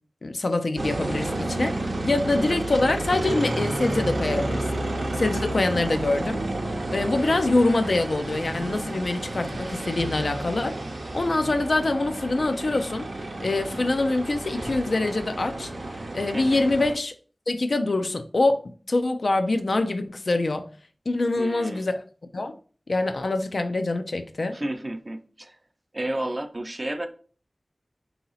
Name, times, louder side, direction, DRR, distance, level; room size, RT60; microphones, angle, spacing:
voice 1, 0.2-4.8 5.1-6.4 6.9-10.8 11.1-13.1 13.4-15.7 16.1-17.1 17.5-20.7 21.1-21.9 22.3-22.6 22.9-24.6, left 2 dB, 70° left, 0.5 m, -25 dB
sound 1, 0.8-16.9, right 2 dB, 80° right, 0.7 m, -31 dB
voice 2, 16.3-16.7 21.4-21.9 24.5-25.6 25.9-27.1, right 1 dB, 35° right, 0.5 m, -31 dB
3.9 x 2.9 x 3.9 m
wide cardioid pair, 70°, 0 cm